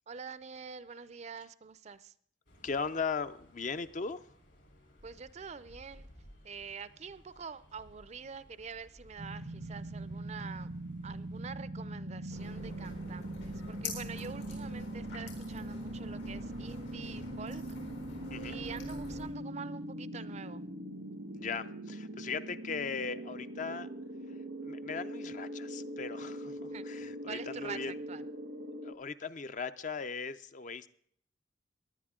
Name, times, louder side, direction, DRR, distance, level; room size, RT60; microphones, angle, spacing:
voice 1, 0.1-2.1 5.0-6.1 6.4-10.7 11.0-17.6 18.4-20.6 26.7-26.8 27.3-28.2, right 5 dB, 35° right, 16 dB, 0.5 m, -46 dB
sound 1, 2.5-11.5, equal, 70° left, 3.6 m, -59 dB
voice 2, 2.6-4.3 18.3-18.6 21.4-23.9 24.6-28.0 28.8-30.9, left 5 dB, 45° left, 11 dB, 0.5 m, -38 dB
sound 2, 9.2-28.9, right 1 dB, 85° right, 1.3 m, -41 dB
sound 3, 12.3-19.3, left 3 dB, 85° left, 4.4 m, -46 dB
18.0 x 11.0 x 3.7 m, 0.63 s
head